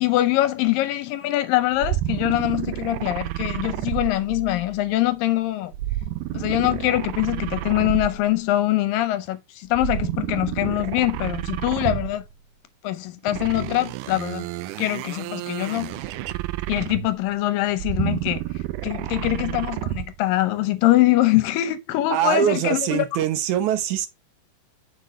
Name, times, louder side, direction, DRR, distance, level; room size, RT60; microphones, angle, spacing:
voice 1, 0.0-5.7 6.3-12.2 12.8-14.5 14.8-16.0 16.7-18.4 18.8-23.1, left 15 dB, 80° left, 2.2 m, -23 dB
sound 1, 1.7-4.8 5.7-8.4 9.7-12.3 13.3-17.3 17.7-20.2, right 15 dB, 85° right, 1.9 m, -30 dB
voice 2, 22.1-24.1, right 10 dB, 70° right, 2.0 m, -23 dB
6.7 x 6.7 x 3.1 m
omnidirectional pair, 4.2 m